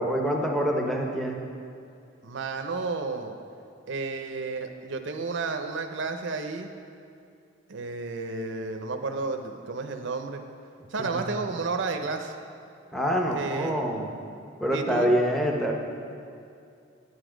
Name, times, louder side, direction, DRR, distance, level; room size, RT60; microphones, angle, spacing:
voice 1, 0.0-1.4 11.0-11.2 12.9-14.1 14.6-15.7, equal, ahead, 0 dB, 0.7 m, -26 dB
voice 2, 2.2-3.3 3.9-6.7 7.7-10.4 10.9-12.3 13.3-13.8 14.7-15.2, right 3 dB, 65° right, 5 dB, 0.6 m, -32 dB
9.8 x 8.1 x 5.0 m, 2.4 s
head